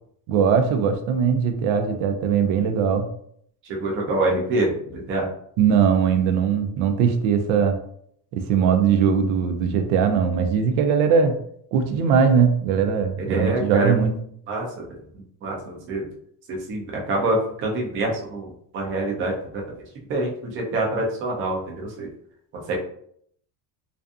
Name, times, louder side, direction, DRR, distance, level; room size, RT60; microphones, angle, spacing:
voice 1, 0.3-3.1 5.6-7.8 8.3-11.4 11.7-14.2, right 6 dB, 85° right, 6 dB, 0.5 m, -20 dB
voice 2, 3.7-5.3 13.3-13.9 14.5-15.0 15.4-16.1 16.5-19.6 20.1-22.1 22.5-22.8, right 2 dB, 30° right, -1 dB, 0.4 m, -26 dB
2.5 x 2.4 x 2.3 m, 0.66 s
cardioid pair, 170°, 44 cm